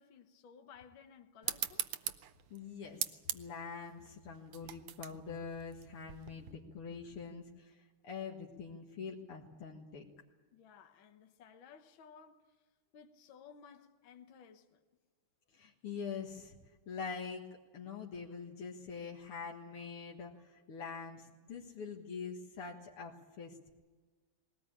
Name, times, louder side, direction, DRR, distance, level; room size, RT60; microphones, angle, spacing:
voice 1, 0.0-1.9 10.5-12.6 12.9-14.8, left 7 dB, 65° left, 1.8 m, -57 dB
sound 1, 1.4-6.5, right 11 dB, 85° right, 1.7 m, -41 dB
voice 2, 2.5-7.8 8.0-10.1 15.5-16.6 16.9-17.5 17.7-23.7, left 5 dB, 90° left, 2.6 m, -44 dB
20.5 x 18.5 x 8.9 m
omnidirectional pair, 2.4 m